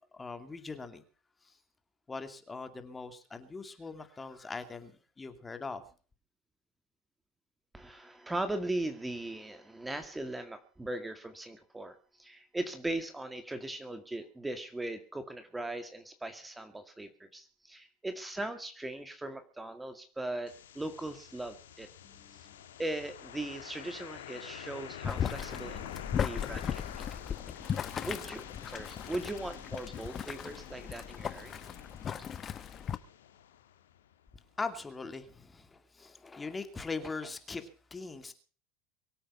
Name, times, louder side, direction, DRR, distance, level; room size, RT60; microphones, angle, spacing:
voice 1, 0.1-1.0 1.4-1.5 2.1-4.9 5.2-5.8 22.0-22.5 34.6-38.3, left 4 dB, 20° left, 2.4 m, -41 dB
voice 2, 7.7-21.9 22.3-22.4 22.8-27.1 27.6-27.7 28.0-31.6, right 1 dB, 10° right, 2.0 m, -39 dB
sound 1, 20.5-34.3, left 10 dB, 80° left, 1.7 m, -48 dB
Boiling, 25.0-33.0, left 8 dB, 35° left, 1.1 m, -37 dB
23.5 x 8.7 x 5.5 m
hypercardioid pair, 80°, 0 cm